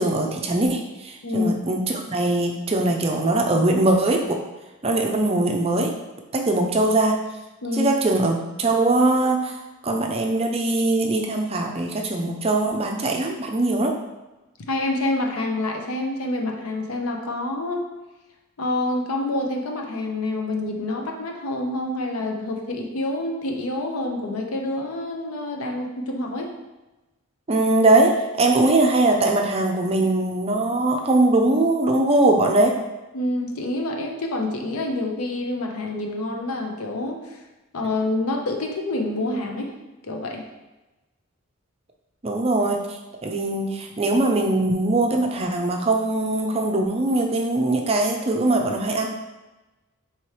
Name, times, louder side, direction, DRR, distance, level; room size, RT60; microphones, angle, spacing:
voice 1, 0.0-4.4 4.8-5.9 6.3-7.2 7.7-9.6 9.8-13.9 27.5-32.7 42.2-42.8 43.2-49.1, right 2 dB, 25° right, 2 dB, 0.5 m, -21 dB
voice 2, 7.6-7.9 14.7-17.9 18.6-26.5 33.1-37.4 37.7-39.7 40.0-40.4, left 2 dB, 80° left, 2 dB, 0.7 m, -27 dB
4.4 x 3.4 x 3.2 m, 1.1 s
head